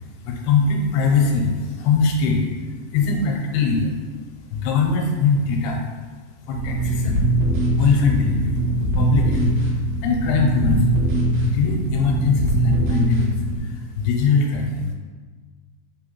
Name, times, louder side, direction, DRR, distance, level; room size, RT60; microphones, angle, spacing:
voice 1, 0.2-3.9 4.5-5.8 6.5-7.2 7.7-8.6 8.9-9.5 10.0-11.0 11.4-14.9, left 5 dB, 85° left, 1 dB, 2.6 m, -21 dB
sound 1, 6.5-13.6, right 1 dB, 80° right, 2.7 m, -21 dB
5.8 x 2.9 x 2.9 m, 1.4 s
omnidirectional pair, 4.5 m